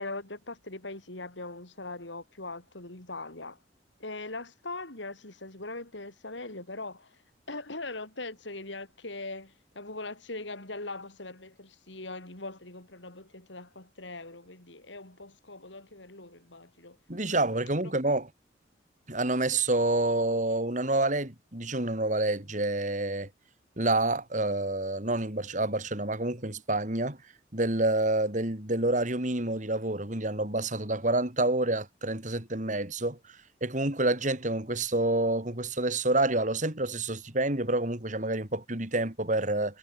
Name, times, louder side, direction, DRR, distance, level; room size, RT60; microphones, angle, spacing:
voice 1, 0.0-3.6 4.0-7.1 7.5-17.0, left 2 dB, 85° left, 5.1 m, -41 dB
voice 2, 17.1-18.3 19.1-23.3 23.8-27.2 27.5-39.8, right 2 dB, 40° right, 3.2 m, -28 dB
head